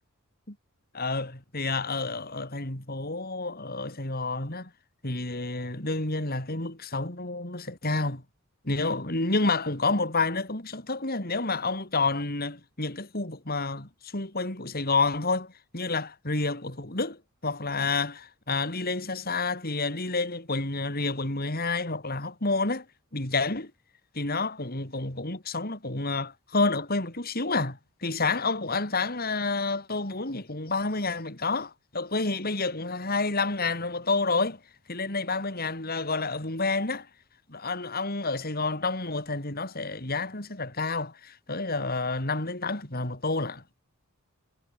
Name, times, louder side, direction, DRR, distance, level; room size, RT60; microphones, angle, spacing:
voice 1, 0.9-4.7 5.0-8.2 8.6-22.8 23.1-23.7 24.1-34.6 34.9-37.1 37.5-43.6, left 3 dB, 45° left, 4.3 m, -29 dB
head